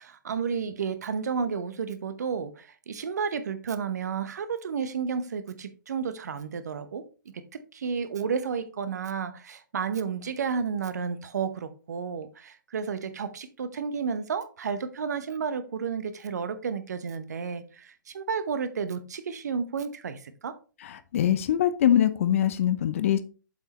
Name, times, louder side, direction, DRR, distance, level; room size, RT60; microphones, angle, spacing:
voice 1, 0.0-7.1 7.3-20.6, right 6 dB, 55° right, 0.9 m, -32 dB
voice 2, 20.8-23.2, left 10 dB, 40° left, 0.6 m, -23 dB
7.5 x 5.5 x 2.9 m
figure-of-eight pair, 130°, 11 cm